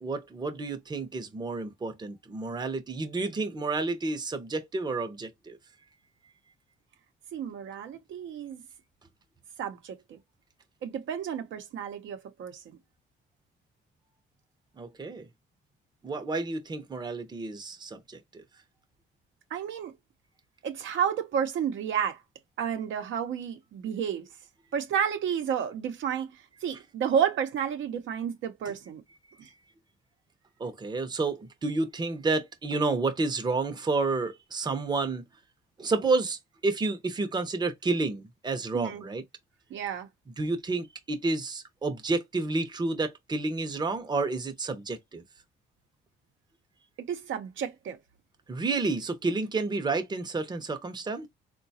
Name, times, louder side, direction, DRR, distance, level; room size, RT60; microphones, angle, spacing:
voice 1, 0.0-5.6 14.8-15.3 16.0-18.4 30.6-35.2 35.8-39.2 40.4-45.2 48.5-51.3, right 3 dB, 20° right, 0.6 m, -30 dB
voice 2, 7.3-8.6 9.6-10.2 10.8-12.8 19.5-19.9 20.6-22.2 22.6-24.3 24.7-29.0 29.4-29.5 38.7-39.0 39.7-40.1 47.0-48.0, right 8 dB, 75° right, 0.7 m, -31 dB
3.8 x 2.2 x 2.7 m
cardioid pair, 90°, 20 cm